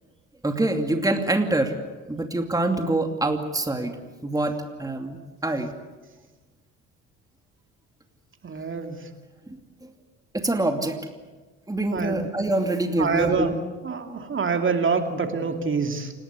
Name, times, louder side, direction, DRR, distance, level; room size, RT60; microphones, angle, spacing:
voice 1, 0.4-1.7 2.1-3.9 4.2-5.7 9.8-9.9 10.3-11.0 11.7-13.6, right 2 dB, 10° right, 5 dB, 2.6 m, -25 dB
voice 2, 8.4-9.0 11.9-12.3 13.0-13.5 13.8-16.1, right 5 dB, 30° right, 5 dB, 2.7 m, -26 dB
28.5 x 19.5 x 8.3 m, 1.3 s
figure-of-eight pair, 55°, 39 cm